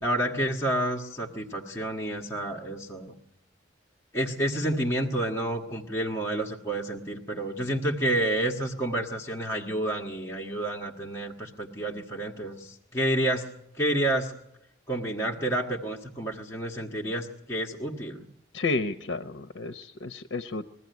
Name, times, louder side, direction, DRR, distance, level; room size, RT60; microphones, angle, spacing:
voice 1, 0.0-3.1 4.1-13.4 13.8-14.3 14.9-18.2, right 1 dB, 15° left, -3 dB, 1.5 m, -29 dB
voice 2, 18.5-20.7, left 3 dB, 75° left, 10 dB, 0.7 m, -31 dB
22.0 x 15.0 x 9.3 m, 0.82 s
head